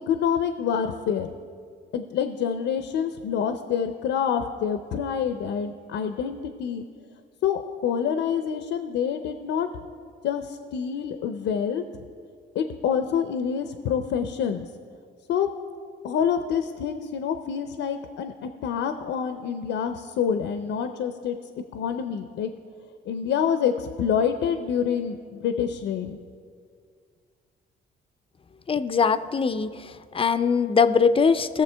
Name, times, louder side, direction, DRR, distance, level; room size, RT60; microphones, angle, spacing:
voice 1, 0.1-1.3 1.9-6.8 7.4-9.7 10.2-11.8 12.5-14.7 15.3-15.5 16.0-21.4 21.7-22.5 23.1-26.2, left 8 dB, 80° left, 8 dB, 0.6 m, -27 dB
voice 2, 28.7-31.6, left 5 dB, 30° left, 12 dB, 0.4 m, -22 dB
18.0 x 6.8 x 3.4 m, 2.1 s
cardioid pair, 90°, 20 cm